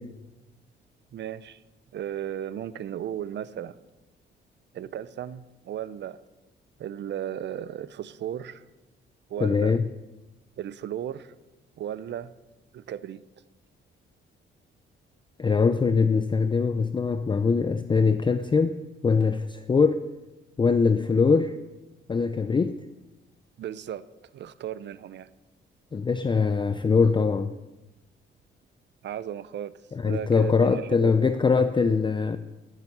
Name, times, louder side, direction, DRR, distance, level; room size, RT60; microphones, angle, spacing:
voice 1, 1.1-1.6 1.9-3.8 4.7-6.2 6.8-8.6 9.3-9.7 10.6-11.3 11.8-12.3 12.7-13.2 23.6-24.1 24.3-25.3 29.0-29.7 30.1-31.4, right 10 dB, 60° right, 0.6 m, -35 dB
voice 2, 9.4-9.8 15.4-18.8 19.0-20.0 20.6-21.6 22.1-22.8 25.9-27.5 29.9-32.4, left 5 dB, 25° left, 0.5 m, -22 dB
15.0 x 7.5 x 6.7 m
cardioid pair, 100°, 21 cm